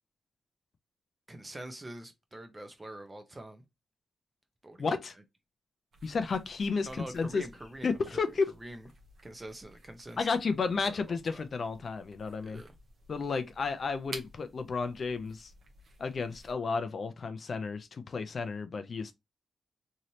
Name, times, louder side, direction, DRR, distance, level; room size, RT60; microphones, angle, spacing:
voice 1, 1.3-3.6 4.6-4.9 6.8-8.2 8.5-8.9 9.2-11.4 12.4-12.7, right 1 dB, 20° right, 0.7 m, -45 dB
voice 2, 4.8-5.1 6.0-7.4 7.8-8.5 10.2-12.6 13.1-15.5 16.0-19.1, left 4 dB, 50° left, 0.4 m, -32 dB
sound 1, 5.9-16.5, right 2 dB, 60° right, 0.8 m, -53 dB
3.1 x 2.7 x 2.7 m
wide cardioid pair, 110°, 0 cm